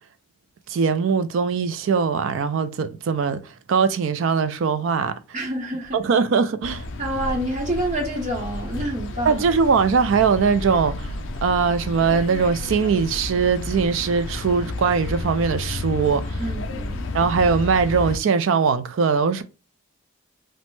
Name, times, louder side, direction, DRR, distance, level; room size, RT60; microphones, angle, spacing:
voice 1, 0.7-3.4 3.7-5.2 5.9-6.8 9.3-11.1 11.4-16.4 17.1-19.4, right 5 dB, 60° right, 0.3 m, -21 dB
voice 2, 5.3-6.0 7.0-9.5 16.4-17.1, right 1 dB, 35° right, 0.8 m, -28 dB
sound 1, 6.6-18.2, left 2 dB, 60° left, 0.4 m, -31 dB
3.1 x 2.0 x 3.0 m
head